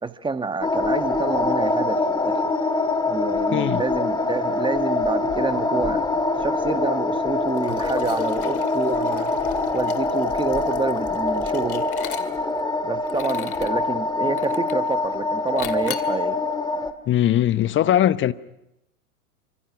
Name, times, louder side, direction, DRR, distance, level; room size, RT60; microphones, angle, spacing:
voice 1, 0.0-2.4 3.1-6.0 6.4-9.3 9.7-11.9 12.8-16.4, right 4 dB, 10° right, 1.4 m, -28 dB
sound 1, 0.6-16.9, left 3 dB, 10° left, 2.0 m, -24 dB
voice 2, 3.5-3.8 17.1-18.3, left 12 dB, 25° left, 0.9 m, -20 dB
Liquid, 7.6-12.6 13.1-13.8 14.4-14.9 15.6-16.2, left 9 dB, 75° left, 2.3 m, -38 dB
29.5 x 26.0 x 6.1 m
hypercardioid pair, 95°, 45 cm